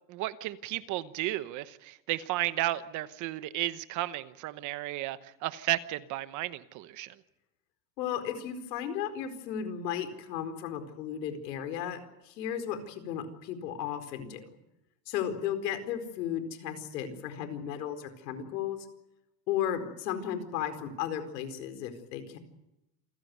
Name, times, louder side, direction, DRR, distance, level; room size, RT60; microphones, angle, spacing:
voice 1, 0.1-7.2, right 15 dB, 35° right, 1.1 m, -33 dB
voice 2, 8.0-14.5 15.1-18.9 19.5-22.4, left 9 dB, 80° left, 4.6 m, -35 dB
28.0 x 16.0 x 9.5 m
supercardioid pair, 155°, 49 cm